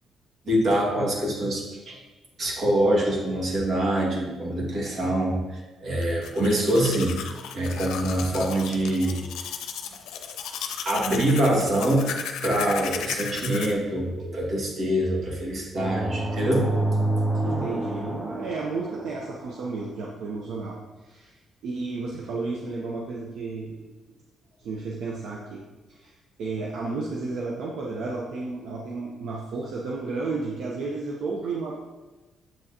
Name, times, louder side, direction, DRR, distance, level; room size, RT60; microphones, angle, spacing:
voice 1, 0.5-2.0 2.4-7.2 7.5-9.5 10.9-12.1 12.4-16.7 17.4-17.6, right 1 dB, 55° right, -2 dB, 2.1 m, -25 dB
Domestic sounds home sounds, 6.0-13.7, left 7 dB, 85° left, 0.6 m, -35 dB
sound 1, 15.8-19.6, right 2 dB, 20° right, 0.9 m, -28 dB
voice 2, 17.4-21.4 21.6-23.8 24.6-25.6 25.9-31.7, right 3 dB, 75° right, -1 dB, 0.8 m, -32 dB
7.8 x 6.5 x 2.9 m, 1.2 s
cardioid pair, 90°, 0 cm